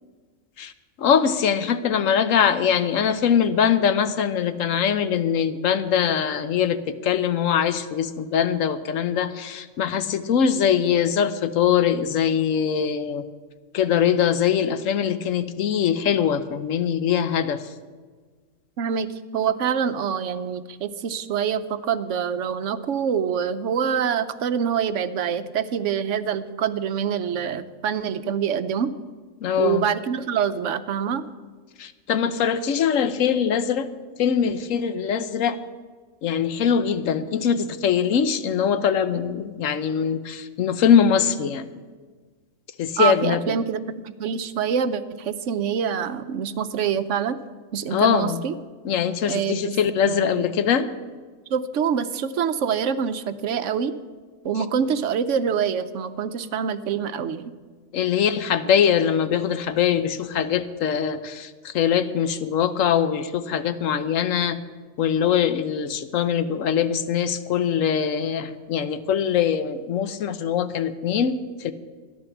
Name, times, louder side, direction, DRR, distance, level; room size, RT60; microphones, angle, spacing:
voice 1, 1.0-13.3 13.7-17.6 29.4-29.9 31.8-33.9 34.2-35.6 36.2-41.7 42.8-43.6 47.9-48.4 48.8-50.9 57.9-64.6 65.0-71.7, left 8 dB, 75° left, 12 dB, 1.1 m, -22 dB
voice 2, 18.8-28.9 29.6-31.2 43.0-43.8 44.2-47.4 47.7-48.5 49.3-49.7 50.1-50.4 51.5-53.9 54.4-57.5, right 7 dB, 70° right, 12 dB, 1.0 m, -25 dB
13.5 x 10.5 x 7.1 m, 1.5 s
omnidirectional pair, 1.4 m